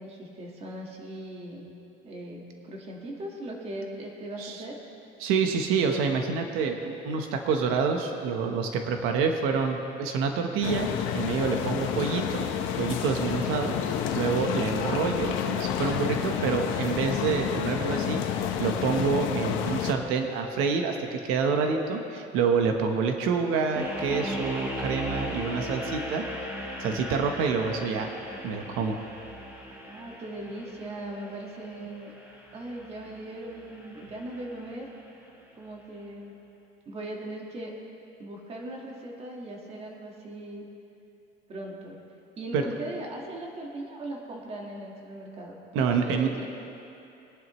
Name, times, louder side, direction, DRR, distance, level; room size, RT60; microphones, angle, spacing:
voice 1, 0.0-1.7 2.0-4.8 28.3-28.9 29.9-32.1 32.5-34.9 35.6-36.3 36.8-37.7 38.2-40.7 41.5-42.0 42.4-46.5, right 1 dB, 30° right, -1 dB, 1.6 m, -39 dB
voice 2, 5.2-10.9 11.1-12.5 12.8-13.7 14.1-26.2 26.8-28.1 28.4-29.0 42.5-42.7 45.7-46.3, right 5 dB, 80° right, 4 dB, 1.1 m, -27 dB
sound 1, 10.6-19.9, left 9 dB, 70° left, 1.0 m, -29 dB
sound 2, 23.7-34.8, equal, 10° right, 1.6 m, -38 dB
22.5 x 10.5 x 3.1 m, 2.8 s
cardioid pair, 170°, 21 cm